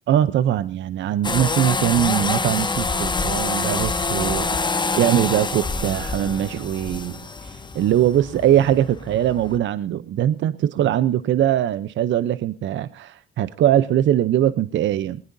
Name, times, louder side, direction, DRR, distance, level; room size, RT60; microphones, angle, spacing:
voice 1, 0.1-15.2, right 11 dB, 70° right, 14 dB, 0.7 m, -21 dB
sound 1, 1.2-9.6, left 3 dB, 20° left, 1.3 m, -26 dB
21.0 x 20.0 x 2.7 m, 0.35 s
cardioid pair, 90°, 20 cm